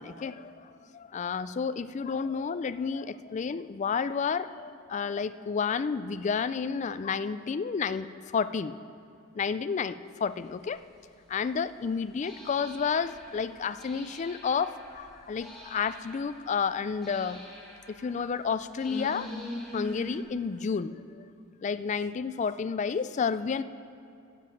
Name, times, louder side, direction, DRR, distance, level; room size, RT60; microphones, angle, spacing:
voice 1, 0.0-8.1 8.3-8.8 9.4-10.8 11.3-17.4 17.9-19.3 19.7-21.2 21.6-23.6, left 6 dB, 35° left, 14 dB, 0.3 m, -31 dB
sound 1, 10.6-10.7 12.2-20.2, left 1 dB, 5° left, 3.0 m, -44 dB
10.5 x 7.5 x 8.5 m, 2.7 s
head